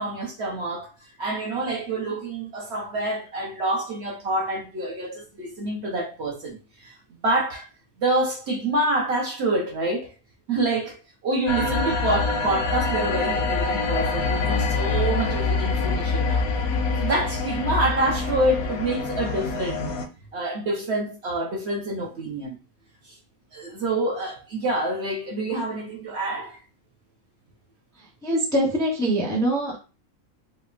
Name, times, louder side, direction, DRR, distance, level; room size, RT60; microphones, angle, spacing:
voice 1, 0.0-6.9 7.2-7.7 8.0-10.1 10.5-11.0 11.2-16.4 17.0-19.8 20.3-22.6 23.0-23.2 23.5-26.6, right 2 dB, 55° right, 0.9 m, -27 dB
sound 1, 11.5-20.1, left 4 dB, 85° left, 1.1 m, -25 dB
voice 2, 28.0-29.8, right 1 dB, 5° left, 0.5 m, -24 dB
4.2 x 2.1 x 2.4 m
omnidirectional pair, 1.5 m